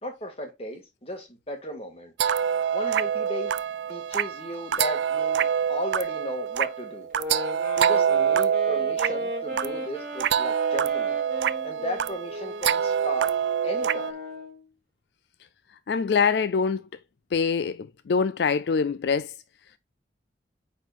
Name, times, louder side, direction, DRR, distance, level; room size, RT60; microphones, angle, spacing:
voice 1, 0.0-2.1 2.7-3.5 3.9-7.1 7.8-11.2 11.6-13.3 13.6-14.2, left 1 dB, 35° left, 2.0 m, -35 dB
sound 1, 2.2-14.1, right 8 dB, 85° right, 0.4 m, -26 dB
sound 2, 7.1-14.7, equal, 50° right, 3.9 m, -37 dB
voice 2, 15.9-16.8 17.3-19.3, left 5 dB, 75° left, 0.4 m, -24 dB
9.1 x 4.3 x 2.5 m
head